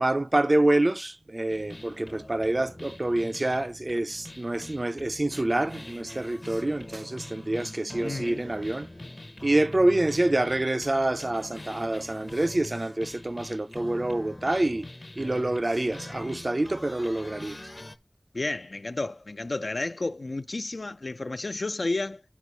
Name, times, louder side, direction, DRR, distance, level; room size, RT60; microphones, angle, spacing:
voice 1, 0.0-8.9 9.4-14.9 15.2-17.6, right 1 dB, 50° right, 0.3 m, -26 dB
sound 1, 1.5-18.0, left 1 dB, 40° left, 0.6 m, -43 dB
voice 2, 8.0-8.4 18.3-22.2, left 2 dB, 80° left, 0.3 m, -31 dB
8.9 x 3.0 x 5.1 m
wide cardioid pair, 45°, 0 cm